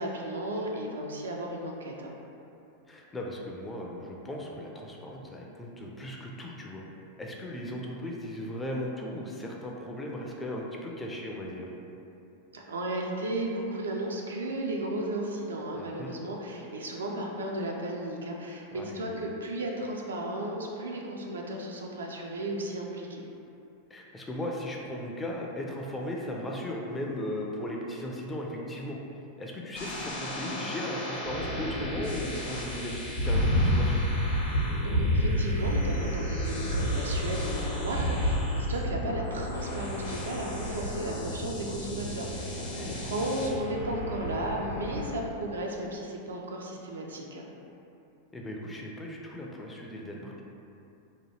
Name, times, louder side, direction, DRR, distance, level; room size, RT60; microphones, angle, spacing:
voice 1, 0.0-2.1 12.5-23.2 34.8-47.5, right 1 dB, 70° right, -1 dB, 0.3 m, -34 dB
voice 2, 2.9-6.8 7.2-11.7 15.8-16.2 18.7-18.9 23.9-29.0 29.4-34.0 42.5-43.1 48.3-50.4, left 1 dB, 15° left, -1 dB, 0.4 m, -37 dB
sound 1, 29.7-45.1, left 1 dB, 60° left, 0.7 m, -36 dB
sound 2, 32.9-38.9, equal, 85° left, 0.4 m, -27 dB
2.8 x 2.2 x 3.1 m, 2.8 s
figure-of-eight pair, 90°, 0 cm